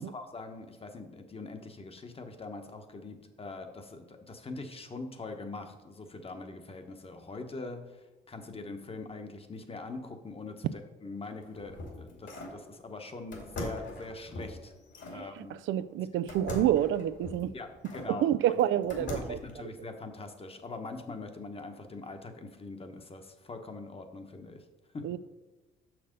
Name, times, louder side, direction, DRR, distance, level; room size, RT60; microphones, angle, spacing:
voice 1, 0.0-14.7 15.1-15.5 17.5-18.3 19.0-24.6 24.9-25.0, left 3 dB, 30° left, 6 dB, 1.1 m, -43 dB
sound 1, 11.2-12.6 13.3-15.2 16.3-18.1 18.6-19.5, left 1 dB, 65° left, 2.4 m, -41 dB
voice 2, 15.2-17.5 18.1-19.4 25.0-25.2, right 11 dB, 75° right, 14 dB, 0.4 m, -28 dB
6.4 x 6.0 x 5.2 m, 1.1 s
cardioid pair, 90°, 20 cm